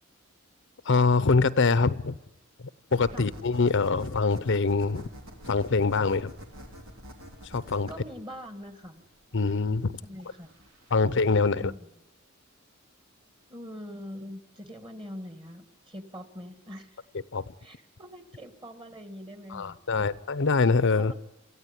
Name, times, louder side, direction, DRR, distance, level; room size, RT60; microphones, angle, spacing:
voice 1, 0.9-2.1 2.9-5.1 5.5-6.3 7.5-7.9 9.3-10.0 10.9-11.7 17.3-17.4 19.5-21.1, left 4 dB, 60° left, 16 dB, 0.7 m, -24 dB
sound 1, 2.9-11.4, equal, 80° right, 3.4 m, -48 dB
voice 2, 7.9-9.0 10.0-10.5 11.5-11.9 13.5-17.0 17.6-20.1 21.0-21.1, equal, 25° right, 9 dB, 2.1 m, -43 dB
28.0 x 14.5 x 9.8 m, 1.0 s
head